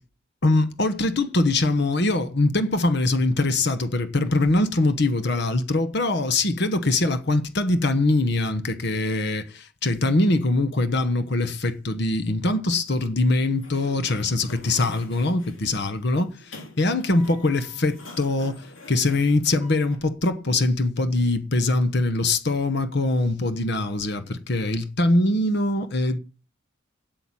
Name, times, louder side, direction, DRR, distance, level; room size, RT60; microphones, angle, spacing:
voice 1, 0.4-26.2, left 2 dB, 55° left, 1.0 m, -23 dB
Sliding door, 13.4-20.0, left 2 dB, 70° left, 3.5 m, -45 dB
8.6 x 7.8 x 8.7 m
head